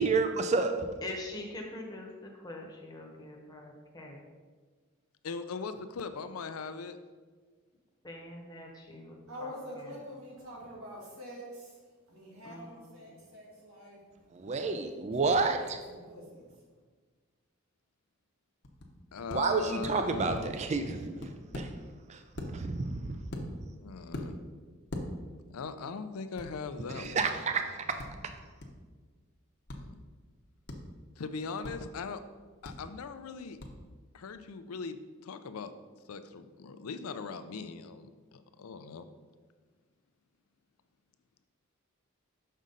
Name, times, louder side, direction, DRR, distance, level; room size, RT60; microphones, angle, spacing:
voice 1, 0.0-0.9 14.3-15.8 19.3-21.3 21.5-21.7 22.1-22.2 22.5-23.2 26.9-28.1, right 4 dB, 30° right, 7 dB, 0.3 m, -30 dB
voice 2, 1.0-2.1 2.4-4.2 8.0-9.6 12.4-12.8, left 2 dB, 20° left, 0 dB, 0.9 m, -43 dB
voice 3, 5.2-7.0 19.1-20.5 23.8-24.4 25.5-27.4 29.8-30.0 31.2-32.2 32.6-33.6 34.1-35.7 36.1-39.0, left 5 dB, 85° left, 10 dB, 0.5 m, -40 dB
voice 4, 9.3-11.8 12.1-14.0 14.5-16.5, equal, 75° right, -4 dB, 2.0 m, -46 dB
sound 1, 18.6-18.9 19.3-19.4 19.8-21.7 22.3-22.5 23.3-23.7 24.1-24.3 24.9-25.0 26.4-26.5 27.0-27.1 28.0-28.1 28.6-28.7 29.7-29.8 30.7-30.8 31.6-31.7 32.6-32.7 33.6-33.7, left 1 dB, 50° left, 0.7 m, -40 dB
6.2 x 5.5 x 3.8 m, 1.5 s
head